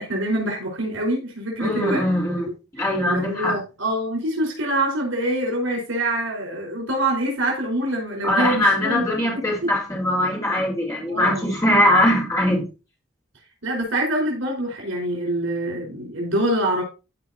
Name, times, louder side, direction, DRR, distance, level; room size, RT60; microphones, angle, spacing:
voice 1, 0.0-2.0 2.8-9.7 11.1-11.5 13.6-16.8, right 1 dB, 85° right, 4.6 m, -25 dB
voice 2, 1.6-2.5 2.7-3.6 8.2-12.6, left 1 dB, 15° left, 3.7 m, -21 dB
14.5 x 5.1 x 2.8 m
head